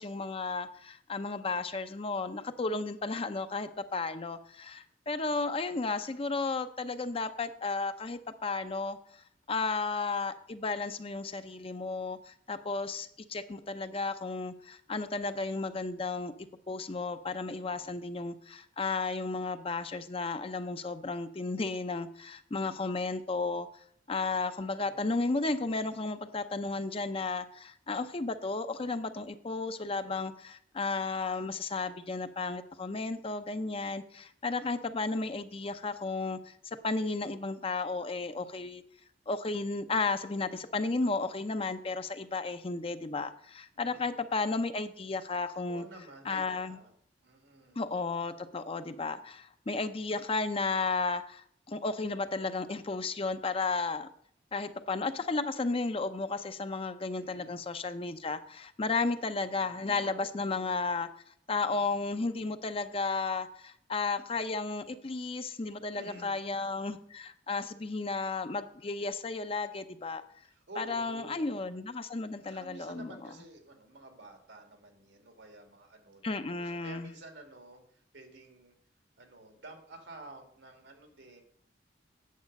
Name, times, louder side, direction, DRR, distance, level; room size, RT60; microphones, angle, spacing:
voice 1, 0.0-9.2 9.5-16.3 16.7-23.7 24.1-38.8 39.3-45.8 46.3-46.8 47.8-54.1 54.5-61.1 61.5-70.2 70.8-73.1 76.2-77.1, left 3 dB, 30° left, 10 dB, 0.6 m, -33 dB
voice 2, 17.7-18.2 24.8-25.2 43.7-44.2 45.6-46.9 47.2-48.0 57.2-57.7 65.9-66.4 70.4-71.4 72.5-78.8 79.2-81.4, right 2 dB, 90° right, 4 dB, 2.1 m, -51 dB
9.4 x 7.3 x 5.3 m, 0.63 s
head